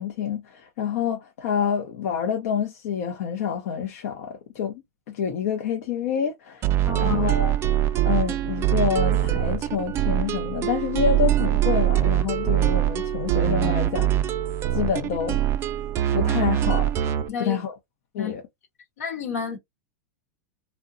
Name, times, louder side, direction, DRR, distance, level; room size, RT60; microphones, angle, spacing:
voice 1, 0.0-7.5 8.0-14.1 14.7-15.4 16.1-16.9 17.4-17.8 18.1-18.4, left 8 dB, 65° left, 0.5 m, -27 dB
sound 1, 6.6-17.3, right 12 dB, 30° right, 0.4 m, -23 dB
voice 2, 6.8-7.2 17.3-17.6 18.2-18.3 19.0-19.6, left 5 dB, 80° left, 1.0 m, -30 dB
2.7 x 2.1 x 2.4 m
hypercardioid pair, 110°, 8 cm